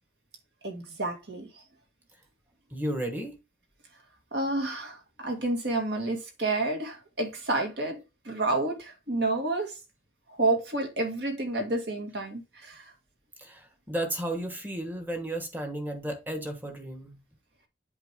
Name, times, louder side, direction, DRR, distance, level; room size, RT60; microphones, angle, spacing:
voice 1, 0.6-1.5 4.3-8.0 8.2-9.7 10.3-12.9, right 2 dB, 60° right, 2.2 m, -29 dB
voice 2, 2.7-3.4 13.4-17.2, right 1 dB, 10° right, 1.3 m, -33 dB
7.9 x 4.6 x 3.6 m
head